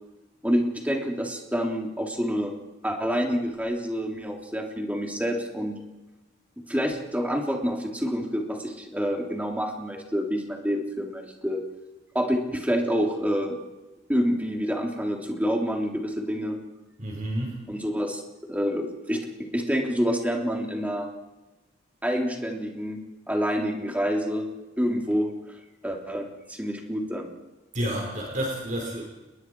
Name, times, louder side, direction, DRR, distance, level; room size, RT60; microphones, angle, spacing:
voice 1, 0.4-2.5 2.8-5.7 6.7-11.6 12.2-13.6 14.1-16.6 17.7-18.2 18.5-21.1 22.0-23.0 23.3-24.5 24.8-25.3 25.8-27.3, equal, 10° right, 0 dB, 3.3 m, -27 dB
voice 2, 17.0-17.6 27.7-29.0, right 1 dB, 40° right, 0 dB, 4.9 m, -30 dB
29.5 x 21.0 x 4.8 m, 1.1 s
head